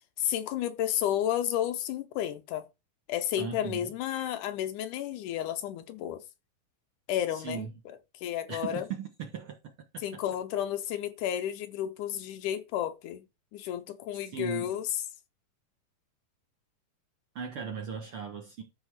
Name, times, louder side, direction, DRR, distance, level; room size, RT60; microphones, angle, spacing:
voice 1, 0.2-2.7 3.1-6.2 7.1-7.7 8.2-8.9 10.0-13.2 13.5-14.9, left 11 dB, 75° left, 2.1 m, -32 dB
voice 2, 3.4-3.9 7.3-7.7 8.5-9.6 10.1-10.2 14.1-14.7 17.4-18.6, right 6 dB, 55° right, 1.6 m, -38 dB
13.0 x 4.4 x 4.8 m
omnidirectional pair, 3.9 m